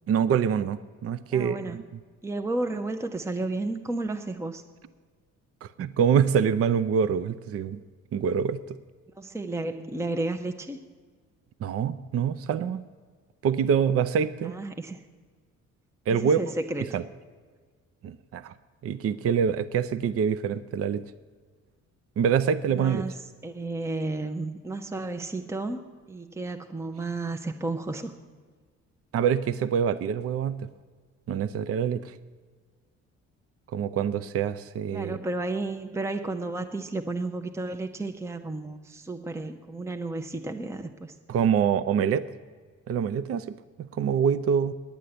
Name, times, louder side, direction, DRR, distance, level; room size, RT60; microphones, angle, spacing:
voice 1, 0.1-1.8 5.6-7.8 8.1-8.6 11.6-12.8 13.4-14.5 16.1-16.5 16.9-17.0 18.0-18.5 18.8-21.1 22.2-23.0 29.1-30.7 31.3-32.2 33.7-35.2 41.3-42.2 42.9-44.7, right 7 dB, 50° right, 15 dB, 0.5 m, -25 dB
voice 2, 1.3-1.8 2.2-4.6 9.2-10.8 14.4-15.0 16.1-17.0 22.7-25.8 26.1-28.1 34.9-41.1, right 2 dB, 10° right, 6 dB, 0.6 m, -32 dB
10.5 x 8.4 x 7.8 m, 1.5 s
cardioid pair, 90°, 30 cm